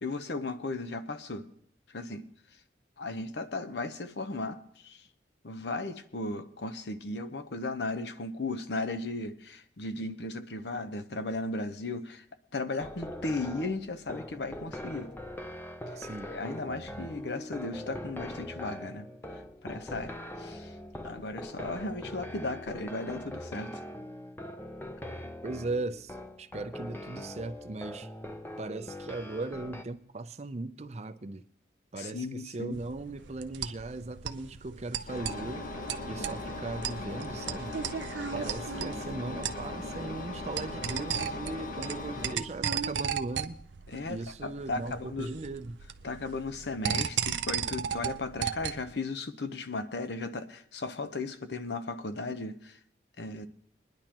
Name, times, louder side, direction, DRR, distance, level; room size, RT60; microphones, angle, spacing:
voice 1, 0.0-1.5 1.9-2.3 3.0-5.0 5.4-12.2 12.5-15.1 16.3-19.1 19.6-20.7 21.0-23.8 32.0-32.8 38.3-38.5 43.9-45.4 46.0-52.8 53.2-53.5, left 2 dB, 70° left, 0.8 m, -36 dB
sound 1, 12.8-29.8, left 1 dB, 10° left, 0.6 m, -42 dB
voice 2, 16.0-16.3 25.4-28.1 28.6-31.4 31.9-35.7 36.0-37.8 38.3-43.6 44.1-45.8, right 2 dB, 35° right, 0.5 m, -38 dB
sound 2, 32.7-48.9, right 8 dB, 85° right, 0.5 m, -36 dB
Engine, 35.1-42.4, left 2 dB, 45° left, 1.1 m, -39 dB
21.5 x 10.5 x 3.0 m
head